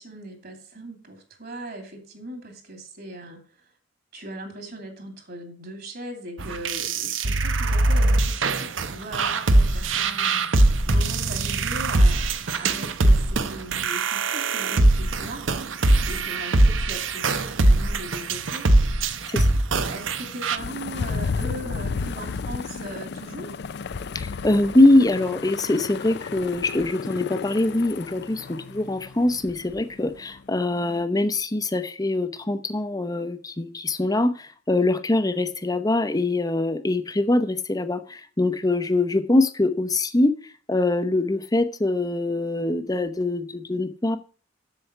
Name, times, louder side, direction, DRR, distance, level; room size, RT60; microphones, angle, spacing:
voice 1, 0.0-3.4 4.1-18.7 19.3-19.4 19.9-23.6, right 1 dB, 55° right, 5 dB, 2.8 m, -39 dB
sound 1, 6.4-20.6, right 2 dB, 80° right, 0.9 m, -21 dB
sound 2, 20.6-31.0, left 5 dB, 60° left, 0.5 m, -33 dB
voice 2, 24.1-40.3 40.7-44.2, left 2 dB, 20° left, 11 dB, 0.8 m, -23 dB
8.0 x 7.0 x 6.8 m, 0.40 s
head